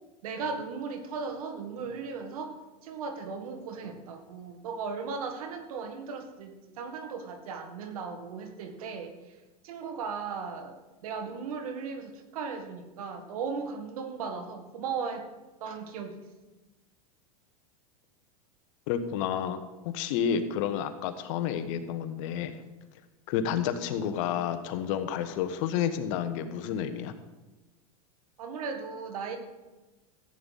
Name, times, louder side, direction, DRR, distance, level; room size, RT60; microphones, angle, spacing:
voice 1, 0.2-2.5 2.8-9.4 9.6-15.3 15.6-16.2 28.4-29.4, right 5 dB, 80° right, 6 dB, 1.8 m, -37 dB
voice 2, 18.9-19.6 19.8-22.5 23.3-27.1, left 8 dB, 60° left, 9 dB, 1.2 m, -30 dB
15.0 x 9.0 x 4.1 m, 1.1 s
supercardioid pair, 120°, 18 cm